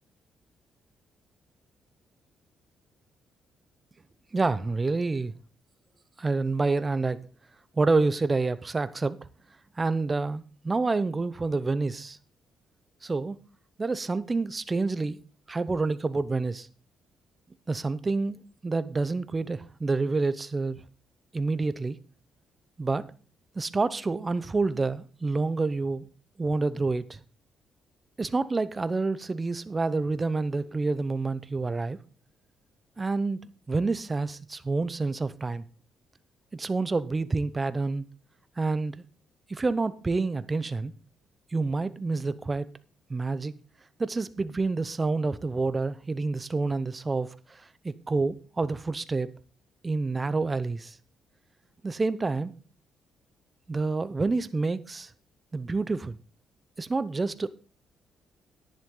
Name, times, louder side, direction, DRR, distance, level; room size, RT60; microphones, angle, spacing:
voice 1, 4.3-5.3 6.2-7.2 7.7-9.2 9.8-12.2 13.0-13.4 13.8-15.2 15.5-16.7 17.7-18.4 18.6-20.8 21.3-22.0 22.8-23.0 23.5-26.1 26.4-27.2 28.2-32.0 33.0-33.4 33.7-35.6 36.5-38.0 38.6-39.0 39.5-40.9 41.5-42.7 43.1-43.5 44.0-49.3 49.8-51.0 51.8-52.5 53.7-55.1 55.5-56.2 56.8-57.5, right 3 dB, 25° right, 0.8 m, -28 dB
10.5 x 10.5 x 3.9 m
cardioid pair, 90°, 0 cm